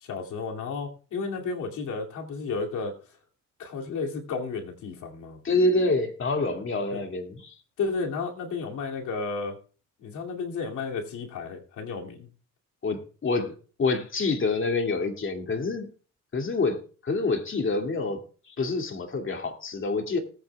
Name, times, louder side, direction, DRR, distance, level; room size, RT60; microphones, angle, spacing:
voice 1, 0.0-3.0 3.6-5.4 6.9-7.0 7.8-9.6 10.0-12.3, left 4 dB, 80° left, 2.6 m, -32 dB
voice 2, 5.4-7.6 12.8-13.5 13.8-15.9 16.3-20.2, left 3 dB, 40° left, 2.4 m, -27 dB
19.5 x 8.7 x 2.3 m
cardioid pair, 90°, 30 cm